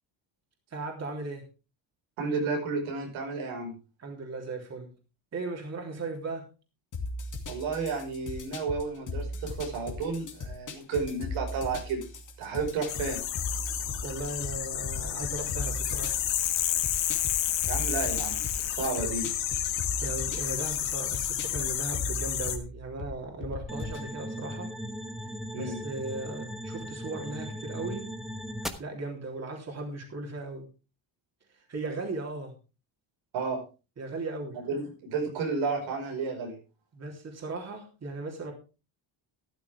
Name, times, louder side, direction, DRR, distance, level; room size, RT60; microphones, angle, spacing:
voice 1, 0.7-1.4 4.0-4.9 5.3-6.5 14.0-16.2 20.0-24.7 25.5-28.1 28.8-30.7 31.5-32.5 34.0-34.6 36.9-38.5, right 3 dB, 35° right, 1 dB, 3.3 m, -37 dB
voice 2, 2.2-3.7 7.5-12.0 12.4-13.2 17.6-19.3 25.5-25.8 33.3-33.6 34.5-36.5, right 4 dB, 90° right, 2 dB, 5.1 m, -32 dB
sound 1, 6.9-24.1, left 2 dB, 40° left, 2.5 m, -39 dB
sound 2, 12.9-22.6, left 11 dB, 70° left, 2.0 m, -31 dB
sound 3, 23.7-28.7, equal, ahead, 1.1 m, -38 dB
13.0 x 12.5 x 3.5 m, 0.32 s
cardioid pair, 145°, 46 cm